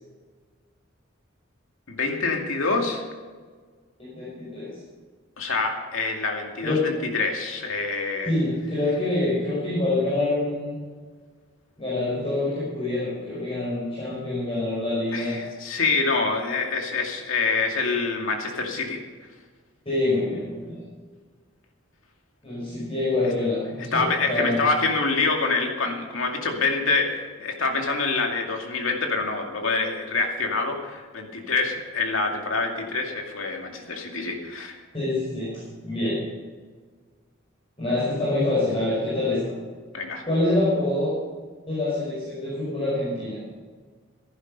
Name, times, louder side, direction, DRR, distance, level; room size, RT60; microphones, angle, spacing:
voice 1, 1.9-3.0 5.4-8.3 15.1-19.0 23.9-34.8 39.9-40.2, left 3 dB, 75° left, 2 dB, 2.3 m, -26 dB
voice 2, 4.0-4.7 6.6-6.9 8.2-10.8 11.8-15.3 19.9-20.8 22.4-24.6 34.9-36.2 37.8-39.5 40.2-41.1 41.7-43.4, left 2 dB, 25° left, -9 dB, 5.4 m, -26 dB
15.0 x 11.0 x 5.5 m, 1.5 s
head